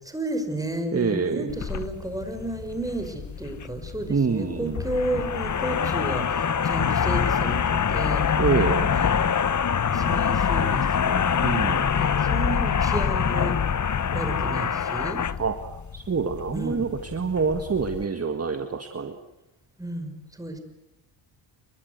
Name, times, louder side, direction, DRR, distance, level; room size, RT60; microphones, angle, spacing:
voice 1, 0.1-7.6 7.9-8.2 8.9-9.5 9.9-11.3 11.9-13.6 14.1-15.2 16.5-16.8 19.8-20.6, right 2 dB, 5° right, 6 dB, 5.6 m, -32 dB
voice 2, 0.9-1.5 4.1-4.8 8.4-8.9 11.4-11.9 15.4-15.6 15.9-19.1, right 5 dB, 30° right, 7 dB, 1.8 m, -26 dB
sound 1, 1.5-18.0, left 7 dB, 35° left, 1.1 m, -25 dB
29.0 x 23.5 x 8.1 m, 0.95 s
cardioid pair, 90°, 50 cm